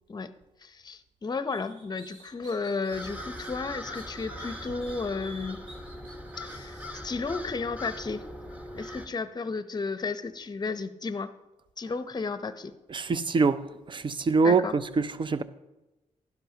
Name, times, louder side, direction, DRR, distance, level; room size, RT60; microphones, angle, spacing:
voice 1, 0.6-5.6 6.4-8.2 8.7-11.3 11.8-12.7 14.4-14.7, left 4 dB, 30° left, 0.7 m, -33 dB
sound 1, 1.5-3.5 3.9-6.9, right 2 dB, 65° right, 3.7 m, -51 dB
sound 2, 2.9-9.1, left 1 dB, 10° right, 1.1 m, -41 dB
voice 2, 12.9-13.6 13.9-15.4, right 4 dB, 40° right, 0.5 m, -24 dB
12.0 x 11.0 x 2.8 m
cardioid pair, 70°, 13 cm